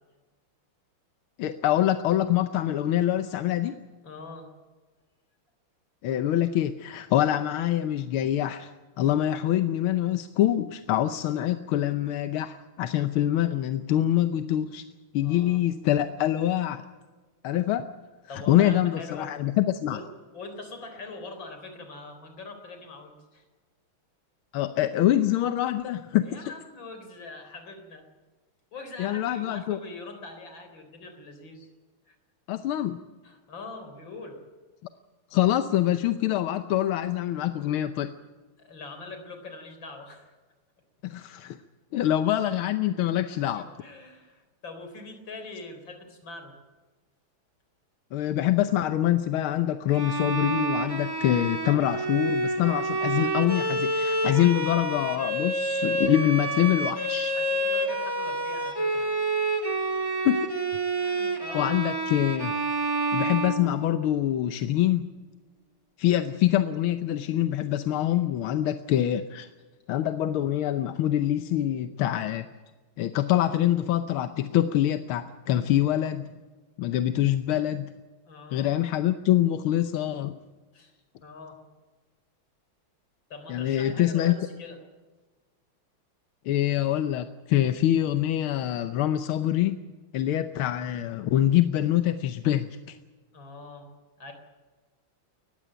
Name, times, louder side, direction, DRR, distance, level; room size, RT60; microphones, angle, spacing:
voice 1, 1.4-3.8 6.0-14.8 15.1-16.8 17.4-17.8 18.3-20.0 24.5-26.5 29.0-29.8 32.5-33.0 35.3-38.1 41.0-41.6 41.9-43.7 48.1-57.4 60.2-60.5 61.5-62.5 63.1-65.1 66.0-69.5 69.9-72.4 73.0-76.2 76.8-77.9 78.5-80.3 83.5-84.4 86.4-89.8 90.1-93.0, left 12 dB, 90° left, 9 dB, 1.7 m, -25 dB
voice 2, 4.0-4.5 15.2-15.6 18.3-19.3 19.9-20.1 20.3-23.5 26.2-28.1 28.7-31.7 32.1-32.2 33.2-34.4 38.6-40.3 43.5-46.5 57.3-59.1 61.0-61.9 78.3-78.7 80.7-80.9 81.2-81.6 83.3-84.8 93.3-93.9 94.2-94.3, left 3 dB, 65° left, 6 dB, 4.6 m, -43 dB
Bowed string instrument, 49.9-64.2, right 2 dB, 10° right, 1.9 m, -28 dB
20.0 x 15.0 x 8.9 m, 1.3 s
omnidirectional pair, 2.3 m